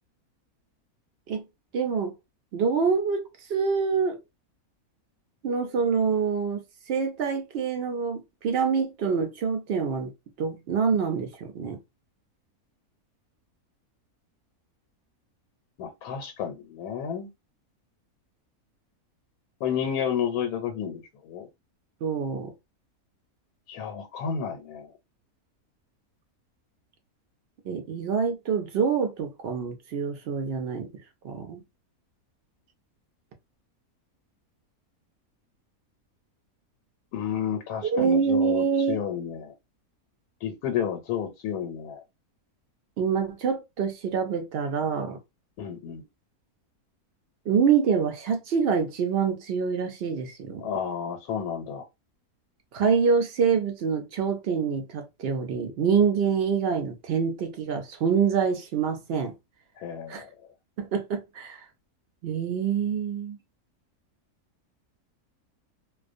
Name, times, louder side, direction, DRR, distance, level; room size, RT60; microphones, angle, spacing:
voice 1, 1.7-2.1 2.5-4.2 5.4-6.6 6.9-10.1 10.4-11.8 22.0-22.5 27.7-30.9 31.2-31.6 37.8-39.0 43.0-45.2 47.5-50.7 52.7-59.3 60.1-60.2 60.8-61.7 62.2-63.4, right 6 dB, 70° right, 0.6 m, -26 dB
voice 2, 15.8-17.3 19.6-21.5 23.7-24.9 37.1-39.5 40.4-42.0 45.6-46.0 50.6-51.8 59.8-60.3, left 8 dB, 90° left, 1.1 m, -31 dB
2.4 x 2.1 x 2.5 m
omnidirectional pair, 1.5 m